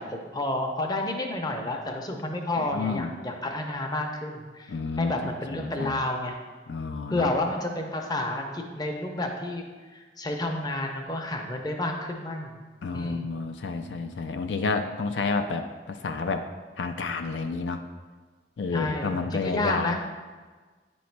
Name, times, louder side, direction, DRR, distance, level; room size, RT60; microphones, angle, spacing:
voice 1, 0.0-6.4 7.1-9.7 9.9-12.6 12.9-13.3 18.7-20.0, left 1 dB, 20° left, 2 dB, 0.6 m, -30 dB
voice 2, 2.6-3.1 4.7-6.0 6.7-7.3 12.8-16.5 16.8-17.8 18.6-20.0, left 4 dB, 80° left, 6 dB, 0.4 m, -30 dB
9.3 x 3.1 x 4.5 m, 1.4 s
head